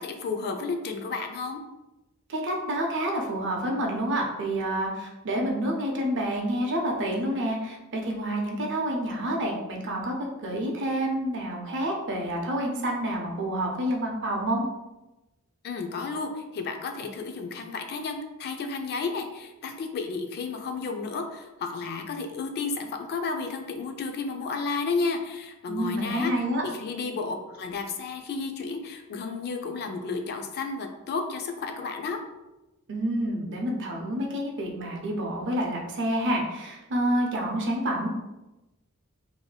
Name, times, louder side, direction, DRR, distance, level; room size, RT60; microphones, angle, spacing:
voice 1, 0.0-1.6 15.6-32.2, left 4 dB, 45° left, 5 dB, 0.3 m, -32 dB
voice 2, 2.3-14.7 25.7-26.6 32.9-38.1, right 1 dB, 55° right, 1 dB, 0.6 m, -28 dB
3.1 x 2.6 x 2.2 m, 1.0 s
head